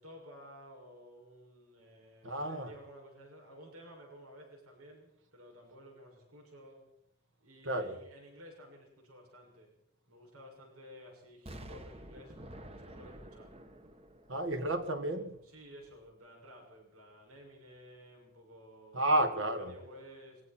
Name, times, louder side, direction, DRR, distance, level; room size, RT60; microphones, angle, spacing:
voice 1, 0.0-6.9 7.4-9.7 10.1-13.5 15.0-19.1 19.6-20.4, equal, 90° right, 6.6 m, -54 dB
voice 2, 2.2-2.7 7.7-7.9 14.3-15.4 18.9-19.7, right 1 dB, 60° right, 2.1 m, -31 dB
Explosion, 11.5-15.4 15.8-15.9, right 1 dB, 30° right, 1.3 m, -50 dB
26.5 x 23.0 x 4.5 m
head